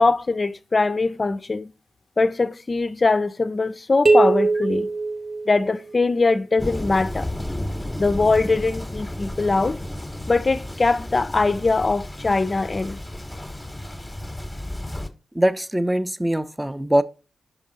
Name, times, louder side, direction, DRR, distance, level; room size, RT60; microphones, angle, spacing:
voice 1, 0.0-1.7 2.2-4.9 5.5-7.3 8.0-9.8 10.3-13.0, left 3 dB, 45° left, 0.4 m, -21 dB
sound 1, 4.1-6.0, right 3 dB, 45° right, 0.9 m, -20 dB
Thunder, 6.6-15.1, left 1 dB, 10° left, 0.9 m, -32 dB
voice 2, 15.3-17.0, right 1 dB, 10° right, 0.5 m, -22 dB
5.3 x 4.9 x 3.9 m
supercardioid pair, 40°, 0 cm